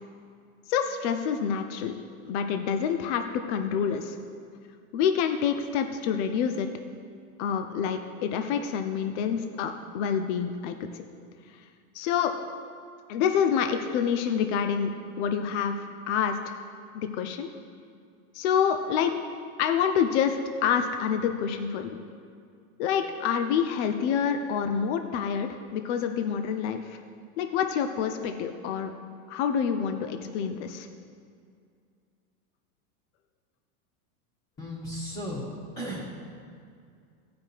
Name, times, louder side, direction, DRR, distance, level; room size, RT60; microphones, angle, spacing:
voice 1, 0.7-1.9 2.3-4.2 4.9-6.7 7.4-10.9 11.9-12.4 13.1-15.8 16.1-16.6 16.9-17.5 18.3-19.2 19.6-22.0 22.8-27.0 27.4-28.9 29.3-30.9, left 7 dB, 55° left, 7 dB, 0.7 m, -27 dB
voice 2, 34.6-36.1, equal, 20° left, -9 dB, 1.8 m, -35 dB
15.5 x 5.2 x 4.6 m, 2.3 s
supercardioid pair, 155°, 43 cm